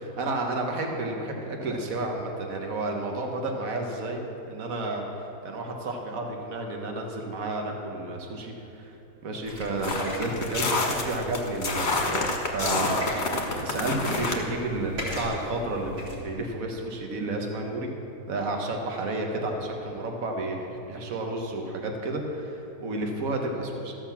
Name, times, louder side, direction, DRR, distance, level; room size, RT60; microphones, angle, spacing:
voice 1, 0.2-4.2 4.5-8.9 9.2-17.9 18.3-23.9, right 2 dB, 55° right, 2 dB, 1.6 m, -31 dB
sound 1, 9.4-16.1, left 1 dB, 70° right, 3.5 m, -37 dB
sound 2, 9.8-14.4, left 3 dB, 45° left, 1.3 m, -28 dB
13.5 x 5.8 x 7.2 m, 2.9 s
omnidirectional pair, 1.8 m